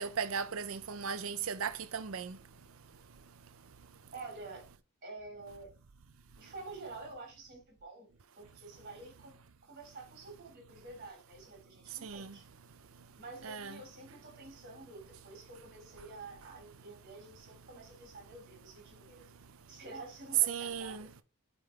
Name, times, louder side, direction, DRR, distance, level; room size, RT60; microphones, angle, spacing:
voice 1, 0.0-2.4 12.0-12.3 13.4-13.8 20.5-21.1, right 6 dB, 65° right, 0.6 m, -37 dB
voice 2, 4.1-4.6 5.0-5.7 6.3-8.1 8.4-9.4 9.6-12.5 13.2-19.2 19.7-21.1, right 3 dB, 40° right, 3.3 m, -49 dB
8.7 x 3.9 x 4.5 m
head